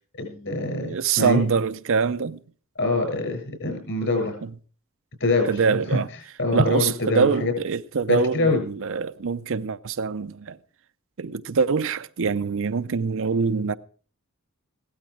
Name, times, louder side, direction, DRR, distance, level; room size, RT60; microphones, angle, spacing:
voice 1, 0.2-1.4 2.8-4.4 5.2-5.6 5.9-6.0 6.4-7.5 8.1-8.6, left 2 dB, 60° left, 7.0 m, -24 dB
voice 2, 0.8-2.4 4.4-4.5 5.5-6.1 6.5-10.6 11.2-13.8, right 5 dB, 65° right, 0.6 m, -24 dB
16.5 x 12.5 x 4.8 m
head